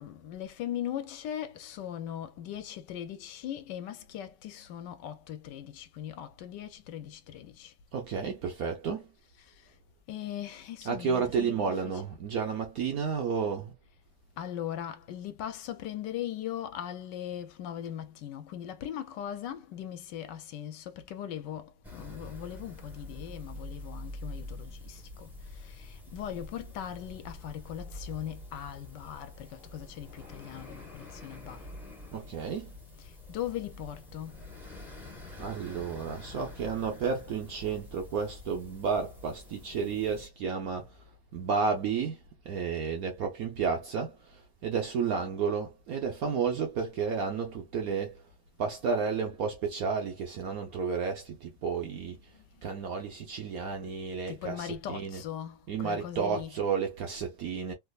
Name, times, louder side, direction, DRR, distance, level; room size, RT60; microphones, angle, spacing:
voice 1, 0.0-7.7 9.4-9.7 10.1-12.0 14.4-31.7 33.0-34.4 52.3-52.6 54.3-56.5, left 10 dB, 75° left, 1.2 m, -39 dB
voice 2, 7.9-9.1 10.8-13.7 32.1-32.7 35.4-41.0 41.3-42.2 42.4-48.2 48.6-52.2 52.6-55.2 55.7-57.7, right 6 dB, 65° right, 0.9 m, -32 dB
sound 1, 21.8-40.3, left 1 dB, ahead, 0.9 m, -46 dB
3.4 x 2.9 x 2.3 m
omnidirectional pair, 2.1 m